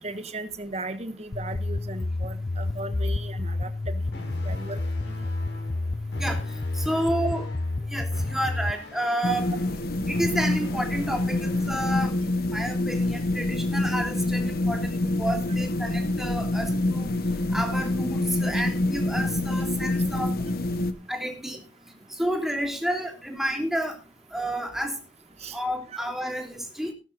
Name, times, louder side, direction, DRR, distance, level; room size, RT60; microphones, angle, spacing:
voice 1, 0.0-4.0 4.4-5.2 25.4-25.6, right 2 dB, 35° right, 10 dB, 1.5 m, -37 dB
sound 1, 1.3-8.7, left 2 dB, 30° left, 0.5 m, -30 dB
sound 2, 4.1-12.1, left 1 dB, 80° left, 6.1 m, -43 dB
voice 2, 6.7-7.4 7.9-9.5 10.1-12.1 12.5-17.1 17.5-20.4 21.1-21.6 22.2-23.9 24.3-25.0 25.5-26.9, equal, ahead, 3 dB, 3.2 m, -30 dB
sound 3, 9.2-20.9, left 2 dB, 55° left, 1.2 m, -26 dB
17.0 x 13.0 x 2.6 m, 0.34 s
head